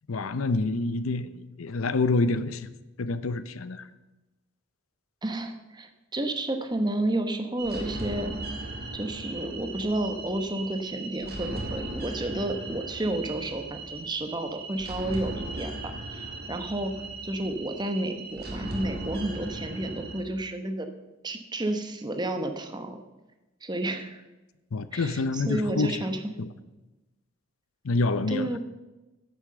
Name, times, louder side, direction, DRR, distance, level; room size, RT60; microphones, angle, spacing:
voice 1, 0.1-2.7 3.0-3.8 24.7-26.0 26.4-26.5 27.8-28.6, left 3 dB, 85° left, 14 dB, 0.6 m, -27 dB
voice 2, 5.2-8.4 8.9-16.9 17.2-20.9 21.2-23.0 23.6-24.2 24.9-26.2 28.3-28.6, right 1 dB, 20° right, 7 dB, 0.9 m, -31 dB
sound 1, 7.6-20.2, right 2 dB, 50° right, 2.0 m, -38 dB
9.7 x 8.0 x 6.8 m, 1.1 s
head